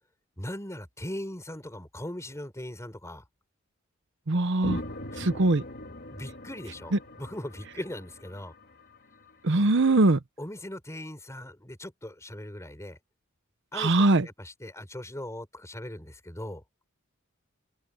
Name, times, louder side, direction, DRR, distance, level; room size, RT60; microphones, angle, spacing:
voice 1, 0.4-3.2 5.1-5.3 5.9-8.5 9.7-10.0 10.4-13.0 13.7-16.6, left 1 dB, 15° left, 4.2 m, -39 dB
voice 2, 4.3-4.8 5.2-5.6 9.4-10.2 13.8-14.2, right 2 dB, 60° right, 0.9 m, -21 dB
sound 1, 4.6-9.3, left 1 dB, 55° left, 3.1 m, -41 dB
open air
head